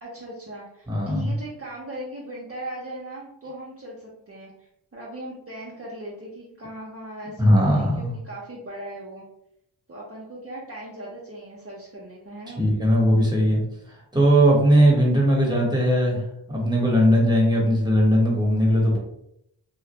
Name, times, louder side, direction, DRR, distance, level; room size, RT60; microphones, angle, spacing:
voice 1, 0.0-9.2 9.9-12.6, right 1 dB, 30° right, -6 dB, 0.7 m, -38 dB
voice 2, 0.9-1.3 7.4-8.1 12.6-16.2 16.5-19.0, equal, 10° right, -3 dB, 1.0 m, -19 dB
2.4 x 2.0 x 2.9 m, 0.76 s
cardioid pair, 45°, 45 cm